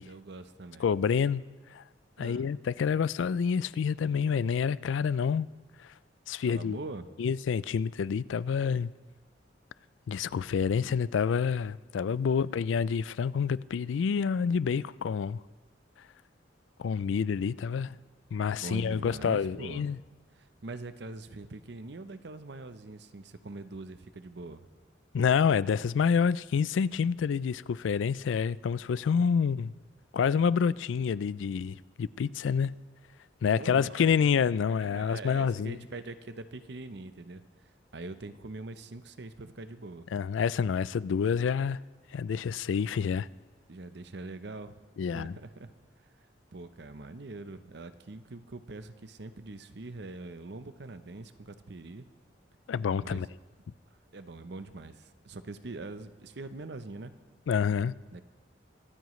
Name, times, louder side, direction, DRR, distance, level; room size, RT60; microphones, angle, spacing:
voice 1, 0.0-0.9 2.2-2.5 6.5-7.1 18.4-19.9 20.4-24.7 33.4-34.4 34.8-40.1 43.7-45.7 46.5-52.1 53.0-53.3 54.1-57.1 58.1-58.2, right 2 dB, 60° right, 0.7 m, -43 dB
voice 2, 0.8-1.4 1.7-1.8 2.2-5.5 5.8-5.9 6.3-6.8 7.2-8.9 10.1-15.4 16.8-17.9 18.3-20.0 25.1-29.7 30.1-32.7 33.4-35.8 40.1-41.8 42.1-43.3 45.0-45.3 52.7-53.3 57.5-57.9, left 6 dB, 85° left, 0.3 m, -28 dB
24.5 x 14.0 x 3.2 m
head